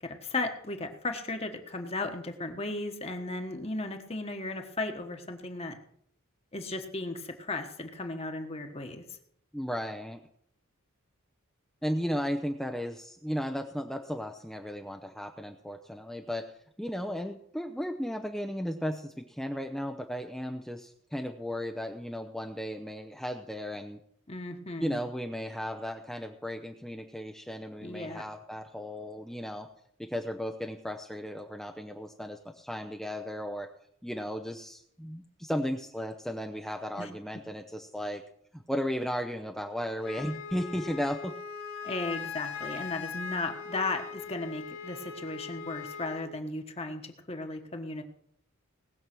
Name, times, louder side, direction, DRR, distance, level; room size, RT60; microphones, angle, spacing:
voice 1, 0.0-5.7 6.5-9.0 24.3-25.0 27.8-28.2 37.0-37.1 41.8-48.0, left 2 dB, 30° left, 5 dB, 1.3 m, -35 dB
voice 2, 9.5-10.2 11.8-16.5 16.8-24.0 24.8-29.7 30.0-33.7 34.0-38.2 38.5-41.3, equal, ahead, 4 dB, 0.6 m, -35 dB
Wind instrument woodwind instrument, 40.0-46.3, left 6 dB, 65° left, 2.1 m, -40 dB
19.0 x 7.2 x 6.1 m, 0.68 s
head